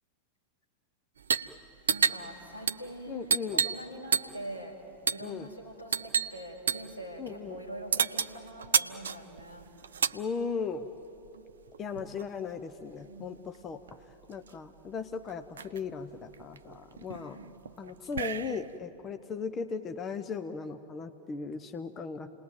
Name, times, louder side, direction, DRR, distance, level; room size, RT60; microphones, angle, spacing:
sound 1, 1.2-1.5 1.8-4.5 5.1-5.3 5.9-6.4 6.7-6.9 7.9-10.2 11.2-12.3 13.5-13.6 13.9-14.5 15.0-15.1 15.3-15.8 16.3-18.8, right 6 dB, 65° right, 0.6 m, -31 dB
voice 1, 1.9-3.4 3.6-4.7 5.1-9.7 13.0-13.4 17.1-17.6, right 1 dB, 85° left, -1 dB, 4.6 m, -44 dB
voice 2, 3.1-3.6 5.2-5.5 7.2-7.6 10.1-10.9 11.8-14.0 14.3-17.4 17.8-22.3, left 5 dB, 25° left, 9 dB, 1.0 m, -37 dB
29.5 x 20.0 x 9.1 m, 3.0 s
figure-of-eight pair, 90°, 0 cm